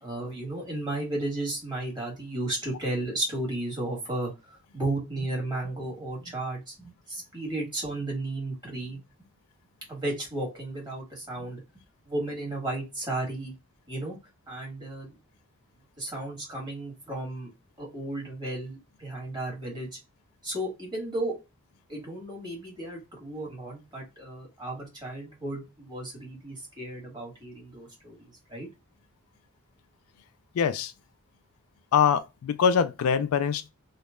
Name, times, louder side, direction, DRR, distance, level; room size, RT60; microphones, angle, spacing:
voice 1, 0.0-9.0 9.9-11.6 12.1-13.5 13.9-14.2 14.5-15.2 16.0-17.5 17.8-19.9 20.4-21.3 21.9-28.7, right 2 dB, 20° right, 1.5 m, -34 dB
voice 2, 30.5-30.9 31.9-33.7, left 7 dB, 75° left, 0.3 m, -23 dB
3.0 x 2.1 x 2.2 m
head